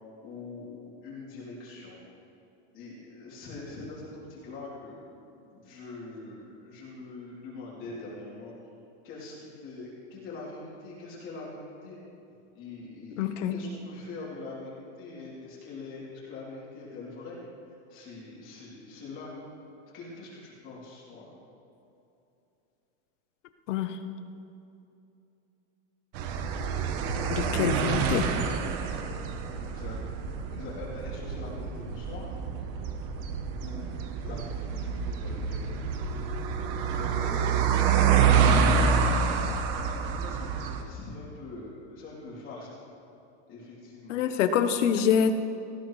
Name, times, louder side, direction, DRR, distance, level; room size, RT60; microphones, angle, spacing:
voice 1, 0.2-2.0 2.7-5.0 5.3-8.5 9.0-12.0 12.5-17.4 17.9-19.4 19.7-21.3 29.6-30.0 30.5-32.3 33.6-33.9 34.2-36.1 36.9-37.4 37.7-38.8 39.8-42.7 43.5-44.2, left 3 dB, 35° left, -7 dB, 3.3 m, -43 dB
voice 2, 13.2-13.6 23.7-24.0 27.3-28.3 44.1-45.3, left 8 dB, 85° left, 9 dB, 1.1 m, -25 dB
sound 1, 26.1-40.8, right 6 dB, 40° right, 1.0 m, -27 dB
18.5 x 14.0 x 3.2 m, 2.8 s
supercardioid pair, 170°, 36 cm